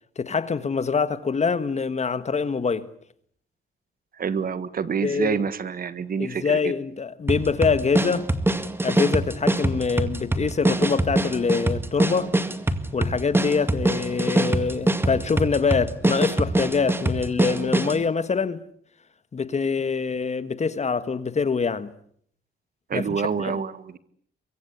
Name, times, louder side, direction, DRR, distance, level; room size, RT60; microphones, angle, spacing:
voice 1, 0.2-2.9 5.0-5.4 6.2-8.3 8.8-12.3 12.9-18.6 19.3-21.9 22.9-23.6, left 5 dB, 35° left, 1.6 m, -25 dB
voice 2, 4.2-6.7 22.9-24.0, right 6 dB, 45° right, 1.7 m, -27 dB
sound 1, 7.3-18.0, right 1 dB, 10° right, 2.0 m, -24 dB
24.0 x 23.0 x 8.4 m
cardioid pair, 90°, 20 cm